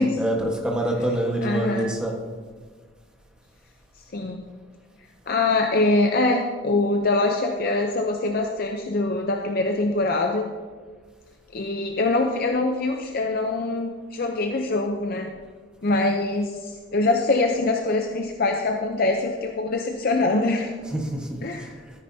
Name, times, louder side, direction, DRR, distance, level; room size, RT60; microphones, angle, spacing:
voice 1, 0.2-2.1 20.8-21.7, right 1 dB, 5° right, -1 dB, 1.3 m, -26 dB
voice 2, 1.4-2.0 4.1-4.5 5.3-10.5 11.5-15.3 15.8-20.7 21.4-21.7, left 2 dB, 50° left, 3 dB, 0.6 m, -23 dB
13.5 x 9.8 x 2.7 m, 1.5 s
head